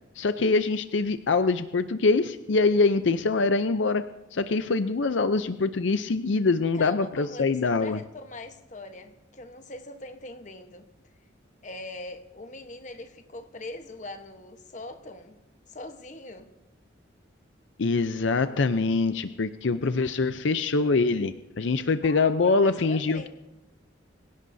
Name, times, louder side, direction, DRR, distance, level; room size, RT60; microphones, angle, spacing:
voice 1, 0.2-4.0 4.3-8.0 17.8-23.3, left 3 dB, 75° left, 10 dB, 0.6 m, -24 dB
voice 2, 6.7-10.9 11.6-15.4 15.7-16.5 19.8-20.0 22.0-23.3, left 2 dB, 40° left, 7 dB, 1.1 m, -42 dB
25.5 x 16.5 x 2.7 m, 1.0 s
head